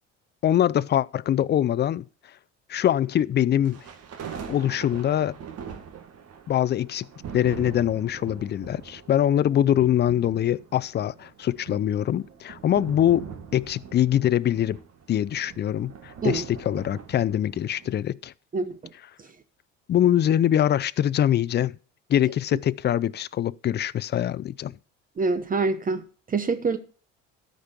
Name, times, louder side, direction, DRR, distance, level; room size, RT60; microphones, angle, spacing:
voice 1, 0.4-2.0 2.7-3.8 4.5-5.4 6.5-7.1 7.3-14.8 15.1-18.3 19.9-21.8 22.1-24.7, left 11 dB, 35° left, 0.5 m, -23 dB
sound 1, 3.6-17.9, right 7 dB, 55° right, 2.0 m, -42 dB
voice 2, 18.5-18.9 19.2-19.3 25.2-26.8, right 4 dB, 30° right, 0.9 m, -26 dB
12.5 x 5.3 x 6.8 m
supercardioid pair, 100°, 30 cm